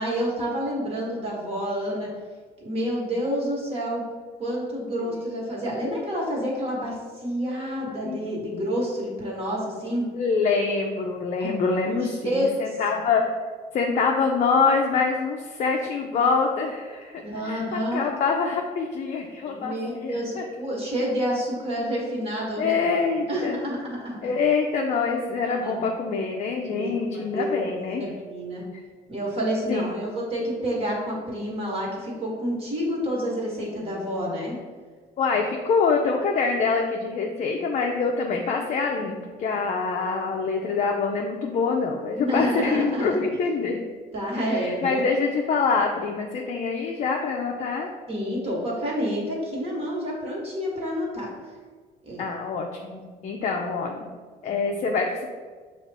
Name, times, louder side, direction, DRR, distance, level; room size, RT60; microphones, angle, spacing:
voice 1, 0.0-2.1 2.6-4.0 4.4-10.0 11.4-11.5 11.8-12.8 17.2-18.0 19.5-24.3 25.4-25.8 26.7-28.6 29.1-34.6 42.1-43.2 44.1-45.0 48.1-51.3 52.0-52.3, equal, 35° right, -3 dB, 1.4 m, -29 dB
voice 2, 10.1-13.3 13.7-20.4 22.6-23.6 24.2-28.0 28.7-28.8 29.7-29.8 35.2-43.8 44.5-47.9 52.2-54.1 54.4-55.3, left 4 dB, 45° left, 1 dB, 0.4 m, -25 dB
5.8 x 2.4 x 3.4 m, 1.5 s
cardioid pair, 110°, 17 cm